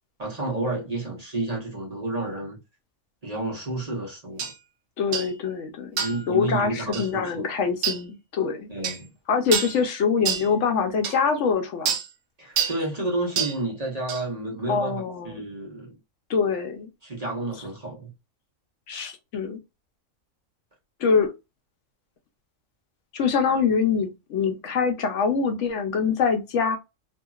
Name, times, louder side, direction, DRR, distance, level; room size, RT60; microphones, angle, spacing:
voice 1, 0.2-2.6 3.2-4.5 6.0-7.5 8.7-9.1 12.4-16.0 17.0-18.1, right 2 dB, 35° right, 1.0 m, -30 dB
sound 1, 4.4-4.5 5.1-5.3 6.0-6.3 6.9-7.1 7.8-8.0 8.8-9.0 9.5-9.8 10.3-10.5 11.0-11.2 11.9-12.1 12.6-12.8 13.4-13.6 14.1-14.2, right 7 dB, 65° right, 0.8 m, -27 dB
voice 2, 5.0-8.7 9.3-11.9 14.7-15.5 16.3-16.9 18.9-19.6 21.0-21.3 23.1-26.8, left 5 dB, 70° left, 0.9 m, -24 dB
2.8 x 2.7 x 2.3 m
omnidirectional pair, 1.4 m